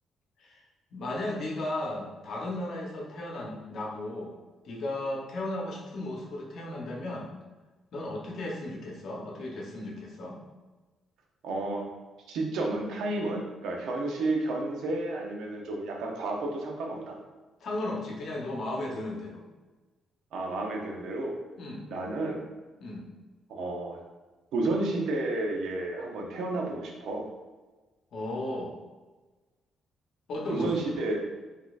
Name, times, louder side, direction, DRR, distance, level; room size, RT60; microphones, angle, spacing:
voice 1, 0.9-4.4 4.6-7.3 7.9-10.4 17.6-19.4 21.6-21.9 22.8-23.1 28.1-28.7 30.3-31.0, left 1 dB, 60° left, -1 dB, 0.8 m, -35 dB
voice 2, 11.4-11.9 12.3-17.2 20.3-21.3 21.9-22.4 23.5-24.0 24.5-27.3 30.5-31.2, right 2 dB, 80° right, 1 dB, 0.6 m, -31 dB
3.9 x 2.7 x 2.4 m, 1.3 s
cardioid pair, 90°, 0 cm